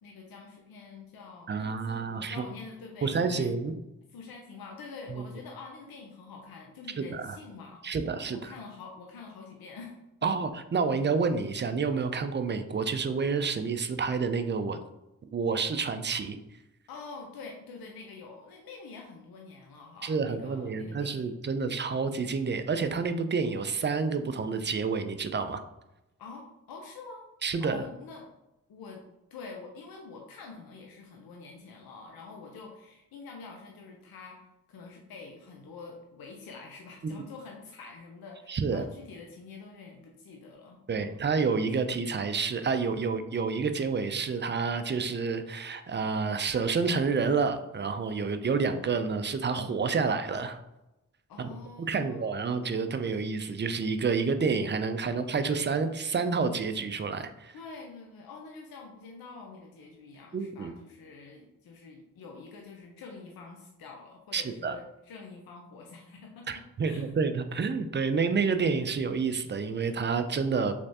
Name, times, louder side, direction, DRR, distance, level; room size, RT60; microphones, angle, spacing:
voice 1, 0.0-3.5 4.1-7.8 8.3-10.0 16.9-21.3 26.2-27.2 27.6-28.3 28.7-29.0 29.3-41.3 51.3-52.5 57.5-67.1, left 4 dB, 75° left, 1 dB, 0.6 m, -46 dB
voice 2, 1.5-2.4 3.0-3.7 7.0-7.4 7.8-8.5 10.2-14.8 15.3-16.4 20.0-25.6 27.4-27.8 37.0-37.1 38.5-38.8 40.9-50.6 51.4-51.5 51.9-57.5 60.3-60.7 64.3-64.8 66.5-70.7, right 5 dB, 30° right, 9 dB, 0.4 m, -29 dB
3.3 x 3.0 x 2.8 m, 0.93 s
cardioid pair, 45°, 36 cm